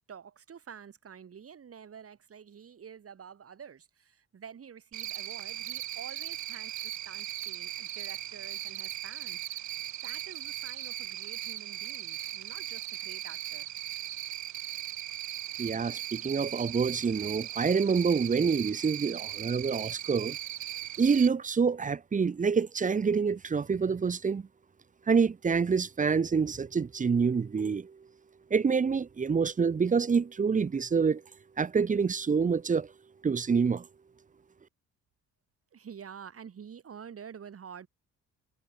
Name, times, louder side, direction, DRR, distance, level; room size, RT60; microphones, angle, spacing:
voice 1, 0.1-9.6 10.0-13.7 35.7-37.9, right 7 dB, 50° right, 5.8 m, -48 dB
Cricket, 4.9-21.3, right 13 dB, 70° right, 1.3 m, -38 dB
voice 2, 15.6-20.4 21.0-24.4 25.1-28.0 28.5-31.2 31.6-32.9 33.2-33.9, right 5 dB, 25° right, 0.8 m, -27 dB
cardioid pair, 90°, 30 cm